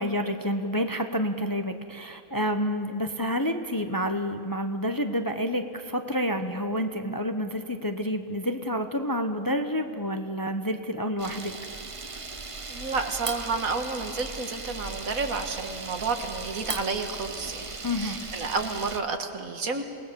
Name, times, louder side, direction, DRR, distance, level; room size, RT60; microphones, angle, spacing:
voice 1, 0.0-11.5 17.8-18.3, equal, 20° left, 6 dB, 0.8 m, -29 dB
Camera, 11.2-19.0, right 3 dB, 25° right, 0.9 m, -37 dB
voice 2, 12.7-17.6 17.9-19.8, right 4 dB, 75° right, 6 dB, 2.0 m, -30 dB
27.5 x 19.0 x 6.9 m, 2.5 s
omnidirectional pair, 1.5 m